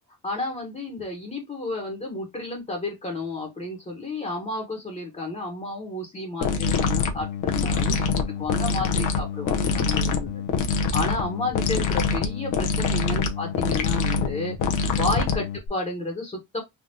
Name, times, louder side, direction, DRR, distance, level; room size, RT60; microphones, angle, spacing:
voice 1, 0.2-10.4 10.7-14.6 15.0-16.6, left 2 dB, 25° left, 1.0 m, -31 dB
sound 1, 6.4-15.7, left 5 dB, 85° left, 0.7 m, -25 dB
3.5 x 2.4 x 2.6 m
cardioid pair, 90°, 30 cm